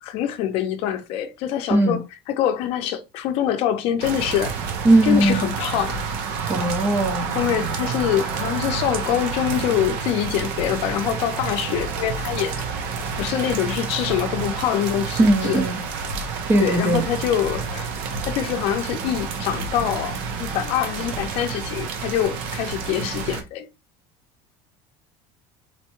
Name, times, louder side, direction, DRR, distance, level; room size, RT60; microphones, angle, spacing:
voice 1, 0.0-4.5 5.0-6.0 6.5-6.6 7.3-12.6 13.1-15.6 16.6-17.9 18.2-23.7, left 10 dB, 55° left, 0.6 m, -25 dB
sound 1, 4.0-23.4, right 5 dB, 75° right, 0.7 m, -29 dB
voice 2, 4.8-5.4 6.5-7.3 15.2-15.8 16.5-17.0, right 1 dB, 15° right, 0.5 m, -18 dB
4.1 x 2.2 x 2.9 m
cardioid pair, 165°, 12 cm